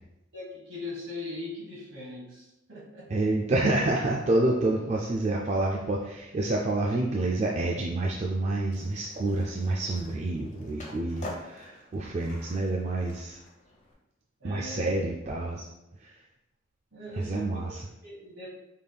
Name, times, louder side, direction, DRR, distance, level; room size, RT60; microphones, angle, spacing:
voice 1, 0.3-3.1 14.4-14.9 16.9-18.5, left 2 dB, 65° right, -4 dB, 1.5 m, -40 dB
voice 2, 3.1-13.4 14.4-15.7 16.0-16.2 17.2-17.8, right 2 dB, 35° right, -1 dB, 0.3 m, -28 dB
Skateboard, 8.7-13.9, left 1 dB, 35° left, 0.8 m, -46 dB
5.4 x 3.3 x 2.3 m, 0.93 s
head